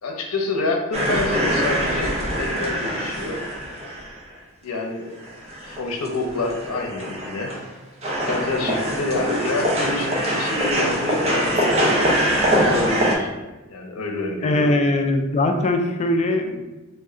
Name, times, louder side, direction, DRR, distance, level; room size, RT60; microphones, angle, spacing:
voice 1, 0.0-3.4 4.6-5.1 5.6-7.5 8.3-12.0 12.5-13.3 13.7-14.8, left 2 dB, 85° left, 2 dB, 0.6 m, -27 dB
sound 1, 0.9-4.3 4.8-4.9 5.2-7.7 8.0-13.2, equal, 30° right, 0.7 m, -23 dB
voice 2, 14.4-16.6, left 2 dB, 30° left, 5 dB, 0.3 m, -21 dB
3.5 x 2.2 x 3.7 m, 1.1 s
head